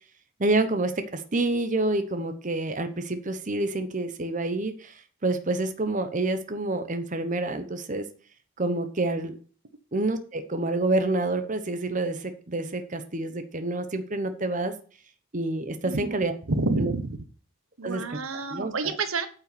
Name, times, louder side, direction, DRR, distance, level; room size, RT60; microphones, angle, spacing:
voice 1, 0.4-8.1 8.6-9.3 9.9-14.7 15.3-16.3 16.8-16.9 17.8-18.0 18.5-18.9, right 2 dB, 40° right, 8 dB, 0.9 m, -28 dB
voice 2, 15.8-16.2 16.5-17.2 17.8-19.3, right 3 dB, 85° right, 10 dB, 1.2 m, -28 dB
9.0 x 5.5 x 6.9 m, 0.41 s
head